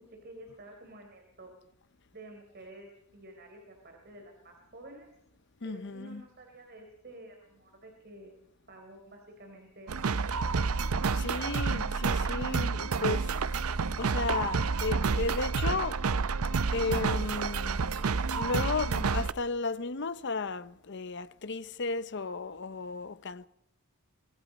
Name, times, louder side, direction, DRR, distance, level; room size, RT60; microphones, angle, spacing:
voice 1, 0.0-1.5 2.1-5.1 5.6-8.4 8.7-9.9, right 1 dB, 45° right, 4.0 m, -50 dB
voice 2, 5.6-6.2 11.1-13.3 14.0-16.0 16.7-17.8 18.4-23.5, left 3 dB, 55° left, 0.8 m, -34 dB
sound 1, 9.9-19.3, right 4 dB, 80° right, 0.7 m, -29 dB
24.5 x 20.0 x 5.3 m
head